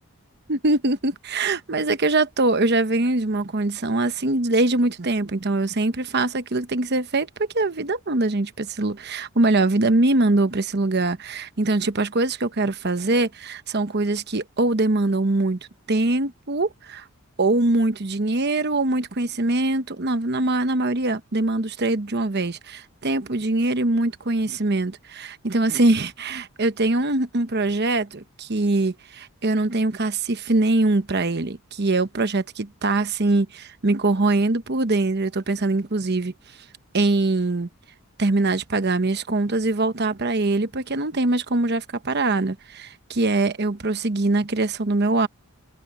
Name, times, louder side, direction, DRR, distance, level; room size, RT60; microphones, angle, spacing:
voice 1, 0.5-15.6 15.9-17.0 17.4-36.3 36.9-37.7 38.2-45.3, right 2 dB, 50° right, 1.0 m, -23 dB
head